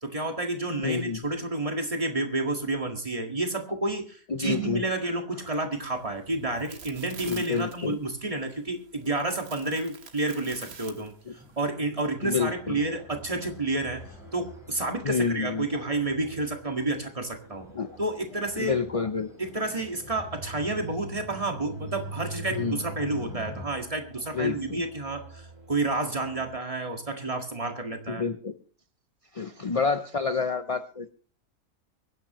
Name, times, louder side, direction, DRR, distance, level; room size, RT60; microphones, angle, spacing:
voice 1, 0.0-17.7 18.0-18.8 19.4-28.2, right 2 dB, 25° right, 3 dB, 1.9 m, -30 dB
voice 2, 0.8-1.2 4.3-4.8 7.2-8.0 12.2-12.8 15.0-15.7 17.7-17.9 18.6-19.3 22.5-22.8 24.3-24.8 28.1-28.5 29.3-31.1, left 5 dB, 45° left, 10 dB, 0.4 m, -28 dB
sound 1, 5.7-11.6, right 6 dB, 85° right, 1.9 m, -48 dB
sound 2, 11.3-23.6, right 1 dB, ahead, 4.0 m, -44 dB
sound 3, 12.4-26.6, right 3 dB, 60° right, 2.8 m, -51 dB
23.5 x 10.5 x 3.1 m, 0.42 s
omnidirectional pair, 1.5 m